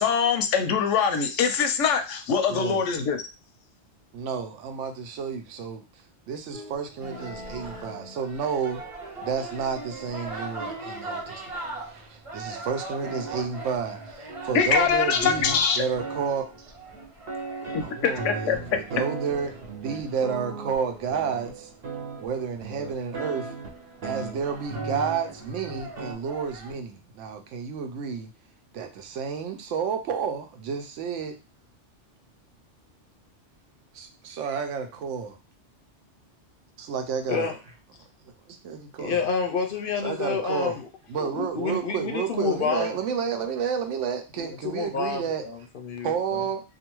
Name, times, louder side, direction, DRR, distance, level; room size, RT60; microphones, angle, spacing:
voice 1, 0.0-3.2 14.5-15.8 17.7-18.8, left 6 dB, 85° left, 6 dB, 0.9 m, -23 dB
voice 2, 2.5-2.8 4.1-5.8 6.3-8.8 9.2-11.6 11.9-16.7 17.8-19.5 19.8-21.7 22.2-23.5 24.0-28.3 28.7-31.3 33.9-35.4 36.8-37.5 38.5-39.3 40.0-40.8 41.1-45.4 46.0-46.6, right 6 dB, 90° right, 6 dB, 0.9 m, -31 dB
sound 1, 6.5-12.0 12.7-12.8 13.0-26.1, right 3 dB, 60° right, 0.9 m, -39 dB
sound 2, 7.0-21.2 22.7-22.9 23.2-23.7 24.2-26.7, right 2 dB, 30° right, 0.9 m, -41 dB
voice 3, 39.0-40.9 41.2-43.0 44.4-46.4, left 5 dB, 60° left, 4 dB, 0.6 m, -29 dB
2.5 x 2.4 x 2.9 m, 0.29 s
omnidirectional pair, 1.2 m